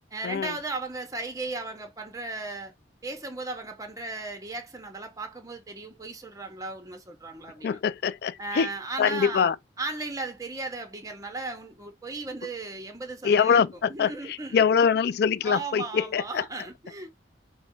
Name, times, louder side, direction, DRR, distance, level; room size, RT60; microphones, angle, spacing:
voice 1, 0.1-2.7 3.0-7.8 8.4-9.5 9.8-13.6 13.9-14.6 15.4-17.1, right 3 dB, 20° right, 0.8 m, -36 dB
voice 2, 7.6-8.7 9.0-9.6 13.2-16.4, left 6 dB, 60° left, 0.4 m, -24 dB
4.2 x 2.1 x 4.4 m
head